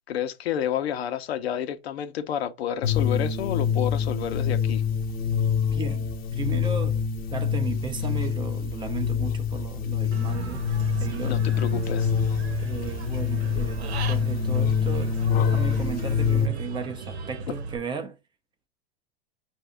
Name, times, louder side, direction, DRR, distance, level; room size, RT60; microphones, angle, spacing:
voice 1, 0.1-4.8 11.2-12.1, left 9 dB, 80° left, 0.9 m, -30 dB
sound 1, 2.8-16.5, left 7 dB, 30° left, 0.7 m, -26 dB
voice 2, 5.7-7.0 7.3-10.7 11.0-11.4 12.6-18.2, right 5 dB, 15° right, 0.6 m, -35 dB
Human voice / Bird, 10.1-17.8, right 3 dB, 85° right, 1.0 m, -36 dB
5.3 x 2.7 x 3.4 m
hypercardioid pair, 135°, 31 cm